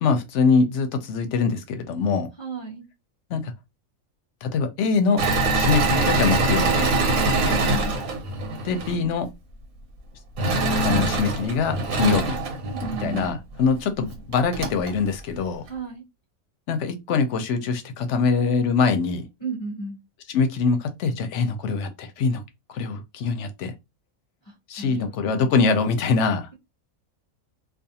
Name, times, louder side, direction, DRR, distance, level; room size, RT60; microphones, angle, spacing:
voice 1, 0.0-2.3 3.3-3.5 4.4-5.2 5.5-6.9 8.6-9.3 10.8-12.4 13.0-15.6 16.7-19.2 20.3-22.4 22.7-23.7 24.7-26.5, left 4 dB, 65° left, 0.8 m, -23 dB
voice 2, 2.4-2.9 7.1-8.0 12.6-13.3 15.6-16.0 19.4-20.0 24.8-25.5, right 4 dB, 40° left, 0.4 m, -34 dB
Engine / Mechanisms, 5.2-9.0 10.4-13.3 14.0-14.1 14.3-14.9, right 2 dB, 85° right, 1.3 m, -23 dB
2.4 x 2.4 x 2.7 m
omnidirectional pair, 1.5 m